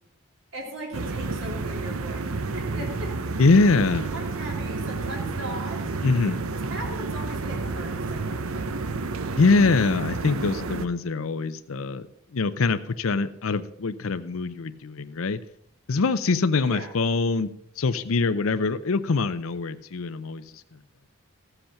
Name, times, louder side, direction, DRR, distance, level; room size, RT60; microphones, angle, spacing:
voice 1, 0.5-3.1 4.1-5.8 6.7-8.4 16.6-16.9, right 1 dB, 70° right, -1 dB, 3.0 m, -38 dB
sound 1, 0.9-10.9, right 3 dB, 85° right, 0.8 m, -30 dB
voice 2, 3.4-4.1 6.0-6.4 9.3-12.1 12.3-15.4 15.9-17.5 17.8-20.6, left 3 dB, 80° left, 11 dB, 0.6 m, -23 dB
14.5 x 7.9 x 5.8 m, 0.72 s
head